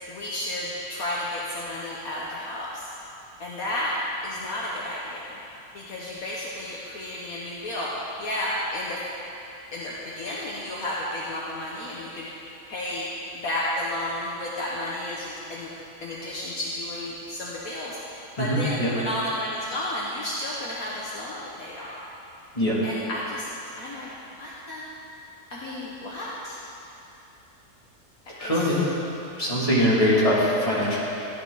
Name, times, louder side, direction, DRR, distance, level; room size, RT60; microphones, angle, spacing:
voice 1, 0.1-2.9 3.4-4.0 4.2-5.4 5.7-9.0 9.7-12.3 12.7-13.1 13.3-15.7 16.0-22.0 22.8-23.5 23.8-24.1 24.4-24.8 25.5-26.6 28.2-28.8, left 1 dB, 60° left, -6 dB, 1.6 m, -32 dB
voice 2, 18.4-18.9 22.5-22.8 28.4-28.9 29.4-31.0, equal, 20° left, -8 dB, 2.6 m, -22 dB
13.5 x 10.5 x 4.0 m, 2.8 s
omnidirectional pair, 1.7 m